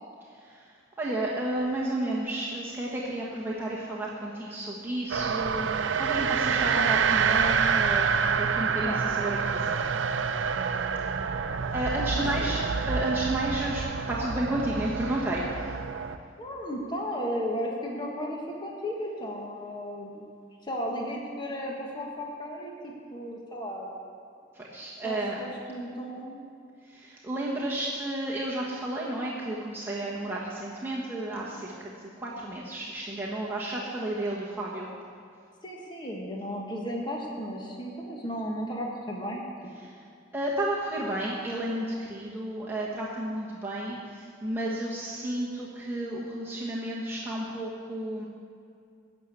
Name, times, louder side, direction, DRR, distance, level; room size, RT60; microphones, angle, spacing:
voice 1, 0.4-0.7 1.0-9.8 11.3-15.8 24.5-25.4 26.8-34.9 39.8-39.9 40.3-48.3, right 1 dB, 10° right, -5 dB, 1.3 m, -32 dB
sound 1, 5.1-16.2, right 6 dB, 70° right, 0.5 m, -27 dB
voice 2, 12.1-12.5 16.4-20.2 20.6-23.9 25.0-26.4 35.6-39.5, equal, 25° left, -1 dB, 1.5 m, -34 dB
13.0 x 6.8 x 8.4 m, 2.3 s
head